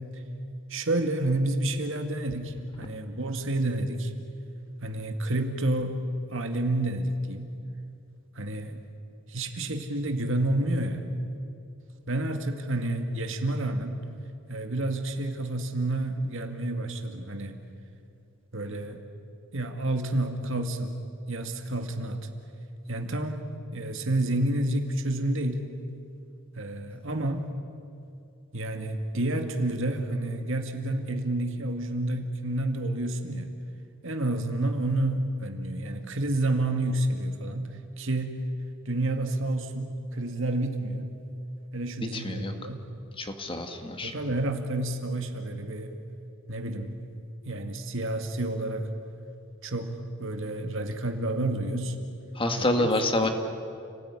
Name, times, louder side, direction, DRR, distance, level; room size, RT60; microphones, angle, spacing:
voice 1, 0.7-4.1 4.8-6.0 6.3-7.5 8.4-8.8 9.3-11.0 12.1-14.0 14.5-17.6 18.5-19.0 19.5-21.0 21.3-22.3 22.9-23.4 23.7-25.7 26.6-27.5 28.5-33.5 34.0-37.7 38.0-38.4 38.9-41.2 41.7-42.9 44.0-45.9 46.5-47.0 47.4-48.9 49.6-52.0 52.6-52.9 53.2-53.3, right 1 dB, 65° right, 5 dB, 2.2 m, -29 dB
voice 2, 42.0-42.5 43.2-44.1 52.3-53.3, left 1 dB, 25° left, 5 dB, 2.0 m, -27 dB
29.5 x 18.5 x 9.9 m, 2.6 s
head